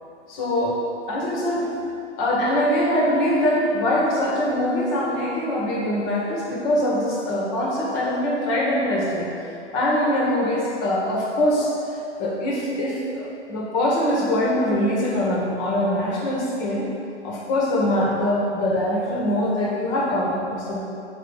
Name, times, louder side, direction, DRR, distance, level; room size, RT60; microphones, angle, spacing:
voice 1, 0.3-0.8 1.1-1.7 2.2-9.3 9.7-11.7 12.2-16.8 17.2-20.8, left 1 dB, 30° left, -3 dB, 1.7 m, -23 dB
5.7 x 5.3 x 5.4 m, 2.7 s
hypercardioid pair, 135°, 35 cm